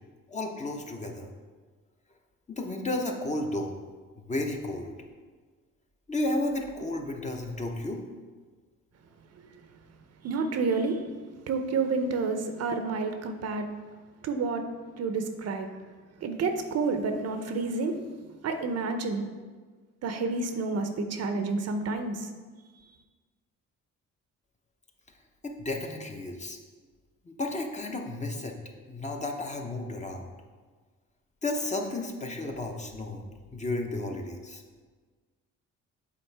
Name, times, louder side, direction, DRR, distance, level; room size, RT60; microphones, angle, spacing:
voice 1, 0.3-1.3 2.5-3.8 4.3-5.0 6.1-8.0 25.4-26.6 27.3-28.6 28.9-30.3 31.4-33.2 33.5-34.6, left 2 dB, 25° left, 2 dB, 0.7 m, -32 dB
voice 2, 10.2-11.0 11.5-13.7 14.2-14.6 15.0-15.7 16.2-17.9 18.4-19.2 20.0-22.3, right 4 dB, 55° right, 7 dB, 0.6 m, -29 dB
7.1 x 4.1 x 3.3 m, 1.4 s
cardioid pair, 90°, 30 cm